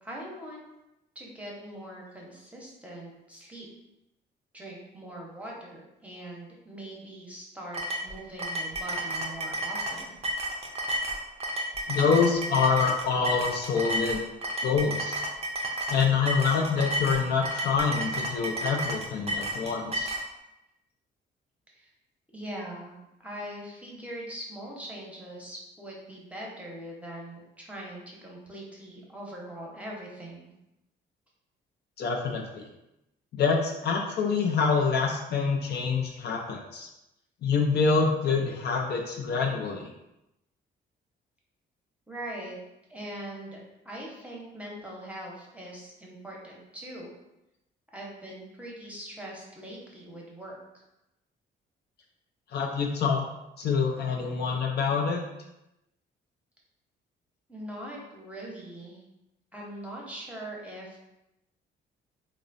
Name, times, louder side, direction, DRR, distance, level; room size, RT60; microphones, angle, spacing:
voice 1, 0.0-0.6 1.1-3.7 4.5-10.1 21.7-21.9 22.3-22.9 23.2-30.5 42.1-42.6 42.9-43.6 43.8-47.1 47.9-50.6 57.5-59.0 59.5-61.0, right 1 dB, 5° right, -3 dB, 0.7 m, -41 dB
sound 1, 7.7-20.3, right 1 dB, 30° right, 0.4 m, -32 dB
voice 2, 11.9-14.2 14.6-15.2 15.9-20.2 32.0-32.6 33.3-36.9 37.4-39.9 52.5-53.2 53.6-55.2, left 5 dB, 55° left, 1 dB, 0.4 m, -26 dB
3.0 x 2.0 x 2.5 m, 0.91 s
cardioid pair, 90°, 20 cm